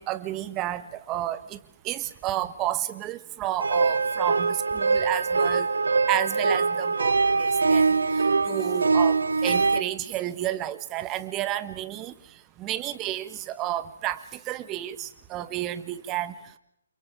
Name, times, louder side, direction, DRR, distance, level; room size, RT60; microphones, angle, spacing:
voice 1, 0.0-1.6 1.8-5.7 6.1-7.8 8.4-12.1 12.6-16.3, right 13 dB, 20° right, 12 dB, 1.5 m, -31 dB
sound 1, 3.6-9.8, right 4 dB, 70° right, 0.8 m, -23 dB
29.5 x 27.5 x 3.8 m, 0.79 s
figure-of-eight pair, 140°, 0 cm